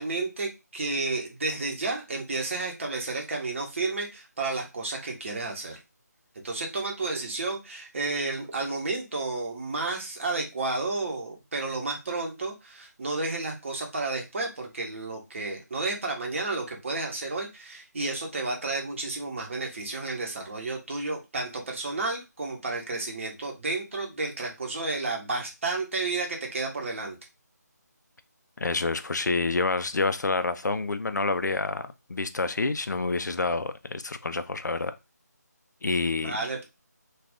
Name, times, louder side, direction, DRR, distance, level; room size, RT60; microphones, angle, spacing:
voice 1, 0.0-5.8 6.4-27.2 36.1-36.6, right 3 dB, 45° right, 0.9 m, -31 dB
voice 2, 28.6-35.0 35.8-36.5, left 3 dB, 80° left, 0.4 m, -28 dB
2.4 x 2.3 x 3.4 m
figure-of-eight pair, 160°, 9 cm